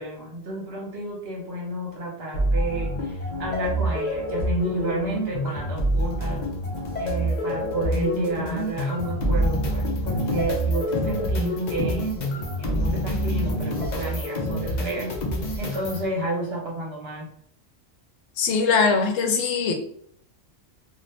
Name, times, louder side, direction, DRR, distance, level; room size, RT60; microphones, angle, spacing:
voice 1, 0.0-6.4 7.0-12.1 12.6-15.1 15.6-17.3, right 1 dB, 55° right, -2 dB, 1.1 m, -31 dB
sound 1, 2.3-16.1, equal, 45° left, 0.6 m, -26 dB
voice 2, 18.4-19.7, left 5 dB, 85° left, 4 dB, 1.0 m, -21 dB
2.6 x 2.5 x 3.2 m, 0.65 s
omnidirectional pair, 1.3 m